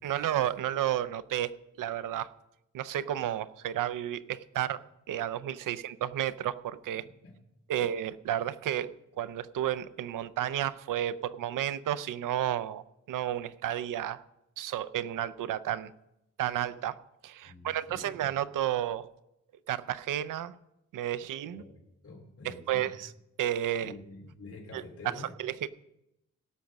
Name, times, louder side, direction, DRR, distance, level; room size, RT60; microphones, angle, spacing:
voice 1, 0.0-2.3 2.7-4.8 5.1-7.0 7.7-14.2 14.6-15.9 16.4-17.0 17.2-19.1 19.7-20.5 20.9-21.6 22.4-23.1 23.4-23.9 24.7-25.1 25.4-25.7, right 11 dB, 85° right, 16 dB, 0.6 m, -32 dB
voice 2, 7.0-7.3 17.4-18.1 21.5-22.9 23.8-25.3, left 2 dB, 50° left, 0 dB, 3.0 m, -48 dB
17.0 x 5.9 x 6.3 m, 0.87 s
wide cardioid pair, 145°, 31 cm